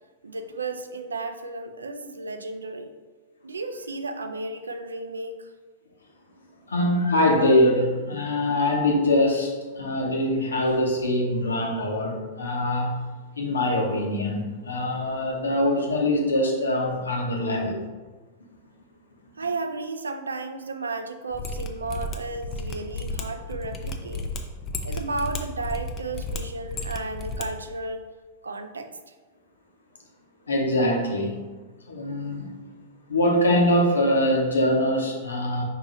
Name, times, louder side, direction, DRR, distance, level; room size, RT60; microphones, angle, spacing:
voice 1, 0.2-2.9 3.4-5.5 19.4-24.3 24.8-28.1 28.4-29.1, right 3 dB, 80° right, 8 dB, 0.4 m, -33 dB
voice 2, 6.7-13.0 13.4-17.8 30.5-31.5 31.9-32.5 33.1-35.6, left 1 dB, 80° left, 0 dB, 0.9 m, -23 dB
Mechanisms, 21.3-27.5 27.7-27.8, left 2 dB, 30° left, 0.5 m, -33 dB
4.5 x 2.9 x 3.8 m, 1.3 s
figure-of-eight pair, 100°, 0 cm